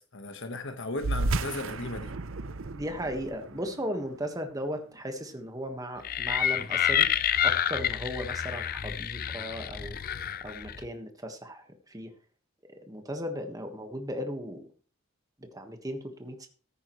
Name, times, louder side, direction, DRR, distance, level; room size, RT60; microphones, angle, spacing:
voice 1, 0.0-2.1, left 2 dB, 60° left, 1.3 m, -36 dB
sound 1, 1.0-5.9, right 3 dB, 65° right, 0.6 m, -34 dB
voice 2, 2.7-7.1 7.4-10.0 10.4-12.1 12.7-14.6 15.4-16.5, equal, 15° right, 1.4 m, -36 dB
sound 2, 6.0-10.9, left 9 dB, 40° left, 0.5 m, -28 dB
14.0 x 9.6 x 3.1 m
head